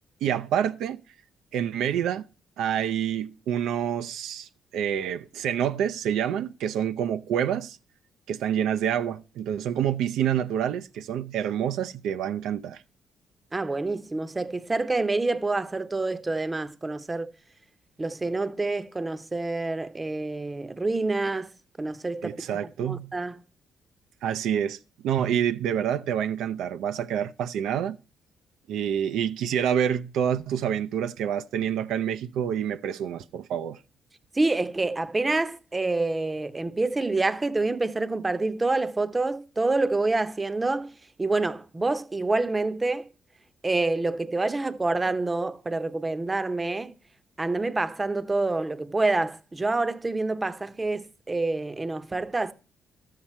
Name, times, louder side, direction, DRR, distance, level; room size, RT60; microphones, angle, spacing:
voice 1, 0.2-1.0 1.5-2.2 2.6-7.8 8.3-12.8 22.2-23.1 24.2-24.8 25.0-28.0 28.7-33.8, right 9 dB, 85° right, 0.5 m, -27 dB
voice 2, 13.5-17.3 18.0-21.5 21.8-22.4 22.8-23.4 34.3-40.9 41.2-43.1 43.6-46.9 47.4-52.5, right 2 dB, 20° right, 0.7 m, -27 dB
12.5 x 7.5 x 4.3 m
cardioid pair, 90°, 0 cm